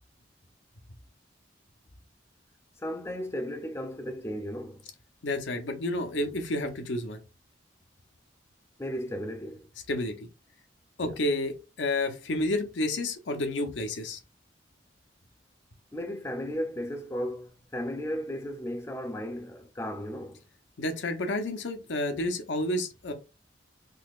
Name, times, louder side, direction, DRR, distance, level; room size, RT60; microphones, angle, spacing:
voice 1, 2.8-4.8 8.8-9.7 11.0-11.2 15.9-20.4, equal, 15° left, 0.5 m, -35 dB
voice 2, 5.2-7.2 9.9-10.1 11.0-14.2 20.8-23.1, left 1 dB, 80° left, 0.7 m, -30 dB
4.0 x 2.7 x 2.4 m
head